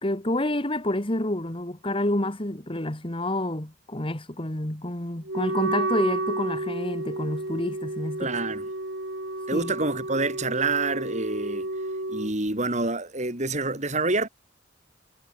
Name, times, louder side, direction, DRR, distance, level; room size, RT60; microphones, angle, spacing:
voice 1, 0.0-8.3 9.5-9.7, left 1 dB, 30° left, 2.4 m, -28 dB
Wind instrument woodwind instrument, 5.3-12.3, right 2 dB, 70° right, 5.0 m, -31 dB
voice 2, 8.2-8.7 9.5-11.7 12.1-14.3, right 3 dB, 40° right, 4.5 m, -27 dB
head